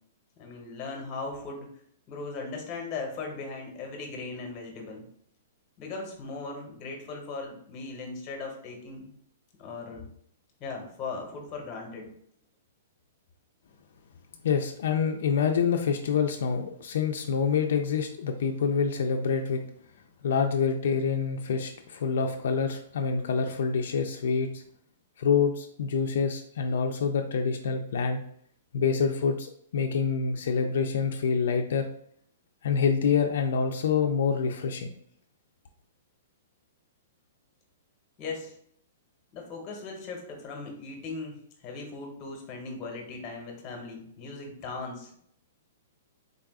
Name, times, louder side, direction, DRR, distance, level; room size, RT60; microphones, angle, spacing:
voice 1, 0.4-1.7 2.1-5.1 5.8-9.1 9.6-10.1 10.6-12.1 38.2-38.5 39.3-45.2, left 3 dB, 20° left, 1 dB, 0.8 m, -38 dB
voice 2, 14.4-19.6 20.2-24.6 25.2-28.2 28.7-31.9 32.6-34.9, left 6 dB, 65° left, 4 dB, 0.3 m, -26 dB
3.9 x 2.3 x 3.5 m, 0.65 s
hypercardioid pair, 175°, 0 cm